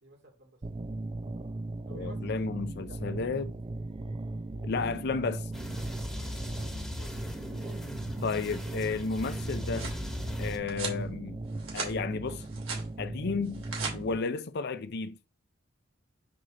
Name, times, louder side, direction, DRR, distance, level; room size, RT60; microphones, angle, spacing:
voice 1, 0.0-0.6 1.9-2.2 2.9-3.0 6.2-7.2 7.5-7.8, right 1 dB, 60° right, 2.5 m, -53 dB
sound 1, 0.6-14.2, right 2 dB, 25° right, 0.4 m, -38 dB
voice 2, 1.9-3.5 4.6-5.5 8.2-9.9 10.4-11.4 11.7-12.4 13.0-13.6 13.9-15.2, left 4 dB, 55° left, 0.5 m, -33 dB
sound 2, 5.5-10.6, left 1 dB, ahead, 1.3 m, -39 dB
sound 3, 9.3-10.0 10.7-11.0 11.5-11.9 12.3-12.9 13.4-13.9, right 5 dB, 85° right, 2.8 m, -38 dB
6.4 x 4.4 x 3.8 m
head